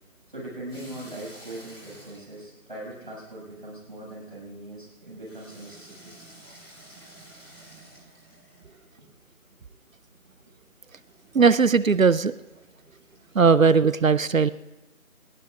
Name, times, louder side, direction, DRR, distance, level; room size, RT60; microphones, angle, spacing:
voice 1, 0.3-6.1 8.9-9.0, right 1 dB, 35° right, -4 dB, 6.3 m, -40 dB
Water tap faucet / Sink (filling or washing), 0.7-3.6 5.2-8.9 10.9-13.5, right 1 dB, 5° left, 5.2 m, -51 dB
voice 2, 11.3-12.3 13.3-14.5, right 5 dB, 65° right, 17 dB, 0.6 m, -18 dB
25.0 x 19.5 x 2.5 m, 1.1 s
figure-of-eight pair, 180°, 43 cm